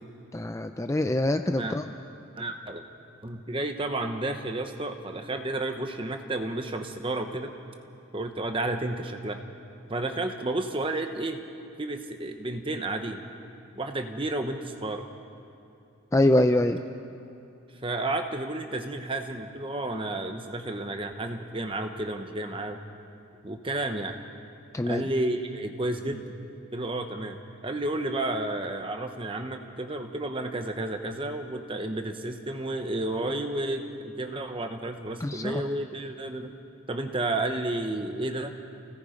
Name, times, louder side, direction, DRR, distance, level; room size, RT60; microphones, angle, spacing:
voice 1, 0.3-1.9 16.1-16.8 24.7-25.1 35.2-35.6, left 1 dB, 15° left, 7 dB, 0.5 m, -24 dB
voice 2, 2.4-2.8 3.2-7.5 8.1-9.4 9.9-11.4 11.8-13.2 13.8-15.0 17.8-22.8 23.4-24.2 24.8-26.2 26.7-36.5 36.9-38.5, right 2 dB, 25° right, 6 dB, 1.1 m, -31 dB
29.5 x 17.5 x 5.2 m, 2.8 s
head